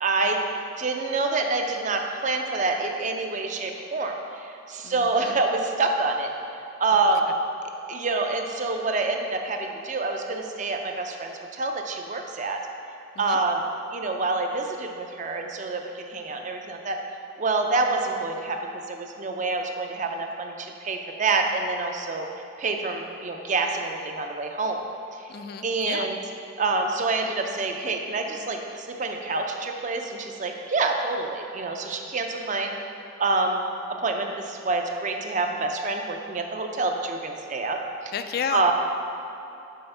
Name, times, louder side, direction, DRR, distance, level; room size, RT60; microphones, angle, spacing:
voice 1, 0.0-0.4 0.8-6.3 6.8-7.2 7.9-12.6 13.2-13.6 13.9-17.0 17.4-22.3 22.6-24.9 25.6-26.2 26.6-32.7 33.2-33.6 34.0-38.1 38.5-38.7, right 3 dB, 35° right, 3 dB, 0.5 m, -27 dB
voice 2, 4.8-5.4 13.2-13.4 25.3-26.1 38.1-38.7, left 7 dB, 50° left, 9 dB, 0.3 m, -32 dB
5.6 x 4.4 x 5.5 m, 2.9 s
head